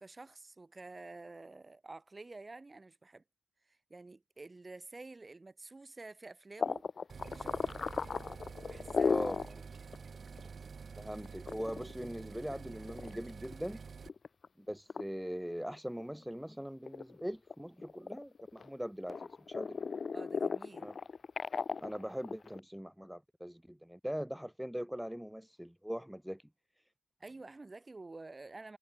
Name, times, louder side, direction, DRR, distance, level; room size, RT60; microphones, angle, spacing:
voice 1, 0.0-3.2 3.7-6.9 7.3-7.8 8.6-9.6 20.1-21.0 27.2-28.8, right 3 dB, 15° right, 7.5 m, -50 dB
sound 1, 6.6-9.5 9.9-10.0 10.4-10.5 11.3-13.5 14.0-14.5 14.9-15.0 15.6-16.5 16.8-18.7 19.1-22.6, left 5 dB, 30° left, 5.7 m, -36 dB
sound 2, 7.1-14.1, right 5 dB, 35° right, 6.6 m, -48 dB
voice 2, 9.1-9.6 11.0-13.8 14.6-19.8 20.8-21.0 21.8-26.4, equal, ahead, 6.1 m, -41 dB
cardioid pair, 120°, 0 cm